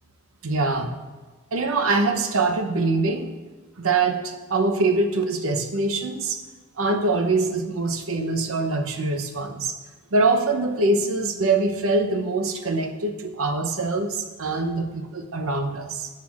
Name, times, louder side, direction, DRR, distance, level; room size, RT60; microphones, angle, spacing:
voice 1, 0.4-0.9 1.5-3.3 3.8-6.4 6.8-9.8 10.1-16.1, right 3 dB, 70° right, 5 dB, 0.6 m, -24 dB
10.0 x 6.5 x 2.4 m, 1.3 s
head